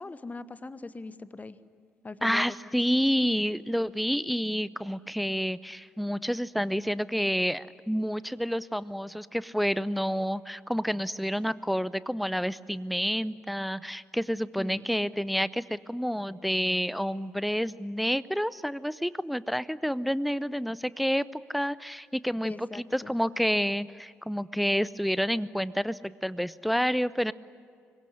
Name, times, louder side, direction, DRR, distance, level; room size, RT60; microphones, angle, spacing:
voice 1, 0.0-1.6 2.0-2.6 14.6-14.9 22.4-23.1, left 3 dB, 25° left, 15 dB, 1.2 m, -41 dB
voice 2, 2.2-27.3, equal, ahead, 19 dB, 0.7 m, -29 dB
25.5 x 22.5 x 9.8 m, 2.2 s
figure-of-eight pair, 40°, 7 cm